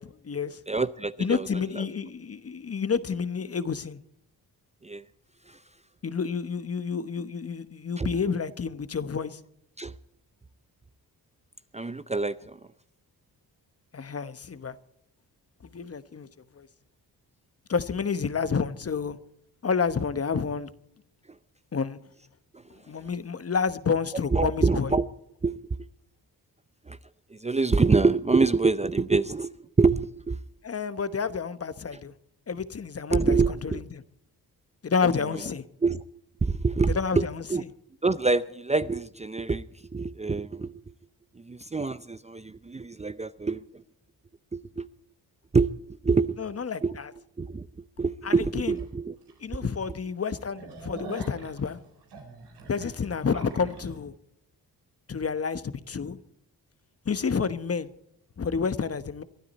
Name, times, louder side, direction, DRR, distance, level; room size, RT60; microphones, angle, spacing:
voice 1, 0.0-0.6 1.2-4.0 6.0-9.4 13.9-14.8 15.6-16.3 16.6-16.7 17.7-19.2 19.6-20.7 21.7-22.0 22.9-24.9 30.6-32.1 32.5-34.0 34.8-35.7 36.9-37.4 46.4-47.1 48.2-48.7 49.4-51.8 52.7-54.1 55.1-56.2 57.0-57.9 58.4-59.2, left 5 dB, 40° left, 1.1 m, -29 dB
voice 2, 0.7-1.5 1.7-1.8 4.8-5.0 5.5-5.6 8.0-8.1 9.8-9.9 11.7-12.6 24.3-25.1 25.4-25.8 26.9-27.0 27.3-30.4 33.1-33.8 35.8-36.0 36.4-37.2 37.5-37.6 38.0-39.7 39.9-40.7 41.4-43.6 44.5-44.9 45.5-45.7 46.0-46.4 46.8-47.0 47.4-47.7 48.0-49.1, right 4 dB, 15° right, 0.6 m, -25 dB
sound 1, 48.7-48.8 49.3-49.4 49.7-49.8 50.2-54.0, right 4 dB, 90° right, 4.2 m, -44 dB
23.0 x 12.0 x 4.2 m
cardioid pair, 65°, 39 cm